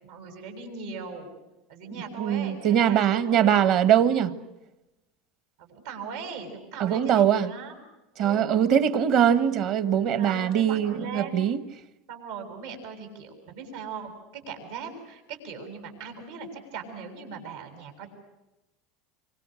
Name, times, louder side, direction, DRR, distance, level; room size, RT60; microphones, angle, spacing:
voice 1, 0.0-1.3 1.7-3.5 4.2-4.4 5.6-7.7 8.2-8.6 10.1-11.4 12.1-18.1, right 5 dB, 85° right, 7.5 m, -39 dB
voice 2, 2.2-4.3 6.8-7.5 8.2-11.6, right 9 dB, 50° right, 1.5 m, -22 dB
26.5 x 25.0 x 6.5 m
supercardioid pair, 145°, 0 cm